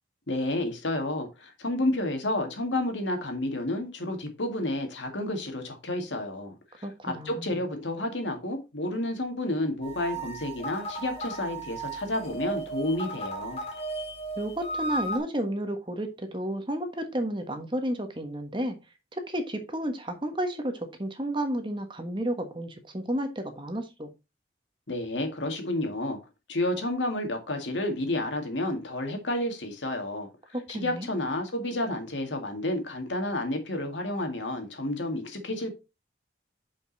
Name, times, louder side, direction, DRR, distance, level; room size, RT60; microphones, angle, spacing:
voice 1, 0.3-13.6 24.9-26.2 26.5-30.3 30.7-35.7, left 1 dB, 80° left, 2.1 m, -30 dB
voice 2, 6.8-7.5 14.4-18.8 19.1-24.1 30.5-31.1, right 1 dB, 25° right, 1.3 m, -32 dB
sound 1, 9.8-15.2, right 2 dB, 35° left, 2.1 m, -35 dB
7.1 x 5.4 x 4.1 m
head